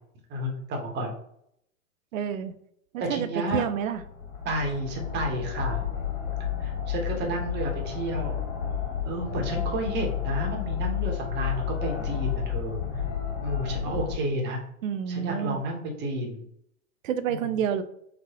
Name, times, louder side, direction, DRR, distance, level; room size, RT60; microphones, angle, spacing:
voice 1, 0.3-1.1 3.0-3.6 4.4-5.8 6.6-8.4 9.0-12.8 13.4-14.6 15.1-16.4 17.4-17.5, right 1 dB, 25° right, 1 dB, 0.9 m, -31 dB
voice 2, 2.1-2.5 2.9-4.0 14.8-15.6 17.0-17.8, right 8 dB, 65° right, 11 dB, 0.5 m, -29 dB
sound 1, 3.8-14.2, left 8 dB, 50° left, 1.2 m, -31 dB
4.0 x 2.1 x 2.8 m, 0.71 s
hypercardioid pair, 110°, 43 cm